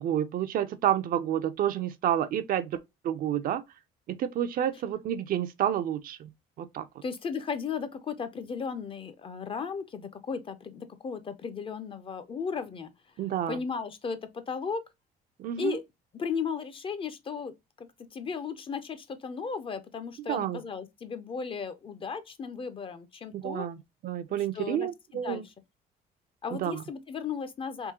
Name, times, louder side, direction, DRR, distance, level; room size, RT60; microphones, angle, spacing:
voice 1, 0.0-2.8 3.0-3.6 4.1-6.3 6.6-6.9 13.2-13.6 15.4-15.8 20.3-20.6 23.3-23.8 24.0-25.4 26.5-26.8, right 10 dB, 55° right, 0.5 m, -29 dB
voice 2, 7.0-12.9 13.5-14.9 15.6-15.8 16.1-23.7 24.5-25.5 26.4-27.9, left 5 dB, 30° left, 0.5 m, -35 dB
3.6 x 2.7 x 2.8 m
cardioid pair, 110°, 17 cm